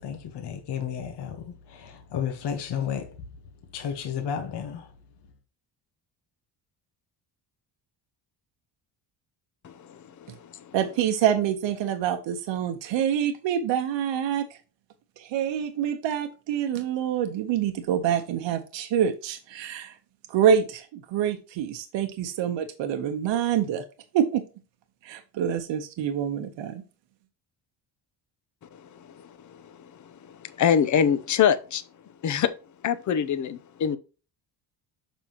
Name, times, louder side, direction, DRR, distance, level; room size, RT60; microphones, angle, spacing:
voice 1, 0.0-3.2 3.7-4.9, left 8 dB, 65° left, 1.2 m, -32 dB
voice 2, 9.6-10.0 10.4-10.7 28.8-28.9 29.2-31.8 32.2-32.5 32.8-34.0, left 8 dB, 40° left, 0.7 m, -25 dB
voice 3, 10.7-14.6 15.2-20.0 20.3-23.8 24.1-24.4 25.0-26.8, right 9 dB, 80° right, 1.0 m, -26 dB
7.2 x 5.6 x 2.9 m
cardioid pair, 160°, 44 cm